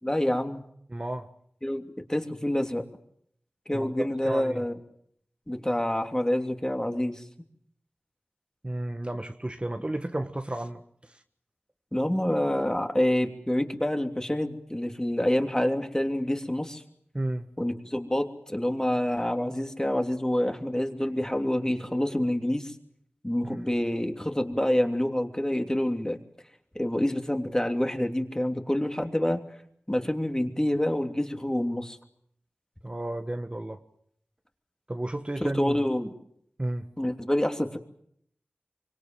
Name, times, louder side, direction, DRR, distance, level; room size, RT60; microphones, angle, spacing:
voice 1, 0.0-0.6 1.6-1.8 2.1-2.8 3.7-4.7 5.5-7.2 11.9-16.8 17.6-22.7 23.2-26.2 26.7-29.4 29.9-32.0 35.4-36.1 37.0-37.8, left 1 dB, 15° left, 5 dB, 3.0 m, -27 dB
voice 2, 0.9-1.3 3.7-4.6 8.6-11.2 17.1-17.5 23.4-23.7 32.8-33.8 34.9-35.8 36.6-36.9, right 1 dB, 25° right, 6 dB, 1.5 m, -33 dB
25.5 x 24.5 x 7.7 m, 0.70 s
wide cardioid pair, 50°, 4 cm